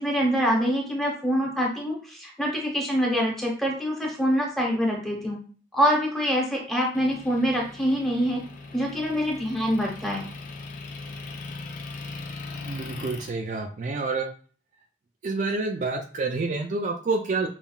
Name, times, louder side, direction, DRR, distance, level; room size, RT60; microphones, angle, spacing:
voice 1, 0.0-5.4 5.7-8.4 8.7-10.2, equal, ahead, -2 dB, 0.8 m, -25 dB
Motor vehicle (road) / Engine, 6.9-13.3, left 3 dB, 45° left, 0.4 m, -39 dB
voice 2, 12.6-14.3 15.2-17.5, right 3 dB, 40° right, 3 dB, 0.3 m, -28 dB
5.3 x 2.3 x 2.3 m, 0.40 s
head